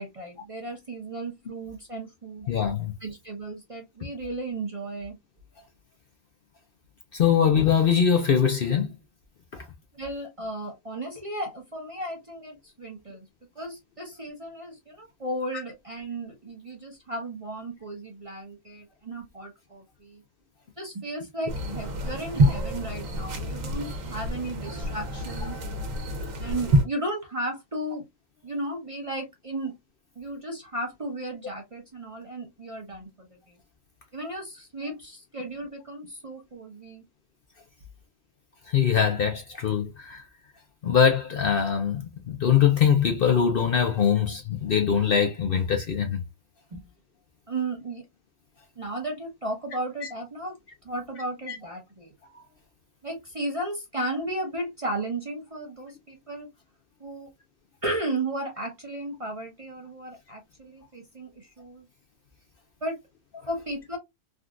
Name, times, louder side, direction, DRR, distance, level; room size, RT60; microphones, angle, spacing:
voice 1, 0.0-2.5 3.0-5.2 9.9-13.3 13.6-20.2 20.8-25.6 26.4-28.0 28.4-29.7 30.2-33.6 34.1-37.0 46.7-46.8 47.5-48.0 48.8-50.6 50.8-52.1 53.0-56.5 57.0-57.3 57.8-61.9 62.8-63.0 63.5-64.0, right 1 dB, 35° right, 0.7 m, -34 dB
voice 2, 2.5-2.9 7.1-8.9 9.5-9.6 38.7-40.2 40.8-46.2 51.5-51.6, left 7 dB, 55° left, 0.7 m, -22 dB
sound 1, 21.5-26.8, right 1 dB, 85° right, 1.3 m, -27 dB
3.6 x 2.4 x 2.3 m
omnidirectional pair, 1.3 m